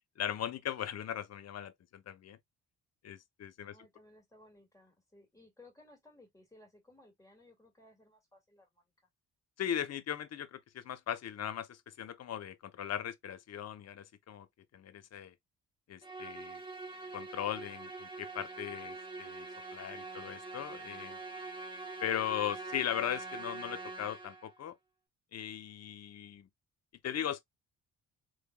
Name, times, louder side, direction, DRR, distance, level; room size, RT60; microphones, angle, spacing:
voice 1, 0.2-2.4 3.0-3.7 9.6-14.5 14.7-15.3 15.9-16.6 17.1-21.2 22.0-24.7 25.3-26.5 27.0-27.4, left 10 dB, 55° left, 0.9 m, -38 dB
voice 2, 3.6-8.9, left 1 dB, 10° left, 2.3 m, -60 dB
Musical instrument, 16.0-24.5, right 3 dB, 15° right, 1.3 m, -44 dB
4.0 x 3.3 x 2.3 m
cardioid pair, 90°, 30 cm